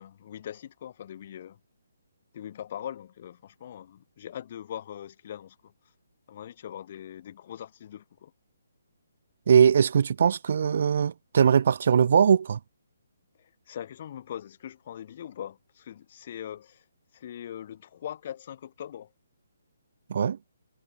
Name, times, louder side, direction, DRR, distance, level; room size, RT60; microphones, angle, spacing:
voice 1, 0.0-1.6 2.3-5.7 6.3-8.3 13.4-16.8 17.1-19.1, left 10 dB, 35° left, 5.1 m, -41 dB
voice 2, 9.5-12.6 20.1-20.4, right 7 dB, 50° right, 0.7 m, -21 dB
hypercardioid pair, 170°, 0 cm